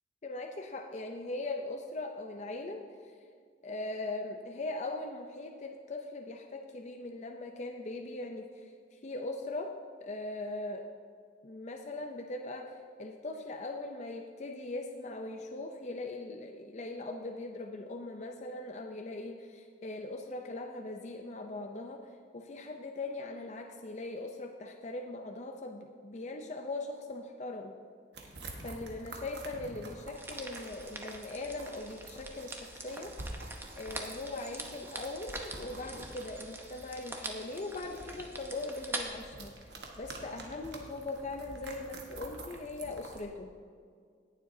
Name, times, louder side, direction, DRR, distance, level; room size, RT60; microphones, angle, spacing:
voice 1, 0.2-2.8 3.6-9.7 10.0-10.8 11.4-27.7 28.6-33.1 33.7-39.7 40.0-43.5, left 2 dB, 40° left, 3 dB, 0.5 m, -40 dB
sound 1, 28.1-43.2, right 2 dB, 75° right, 1.3 m, -48 dB
sound 2, 30.2-39.0, right 2 dB, 15° right, 0.8 m, -44 dB
18.0 x 7.4 x 2.7 m, 2.1 s
head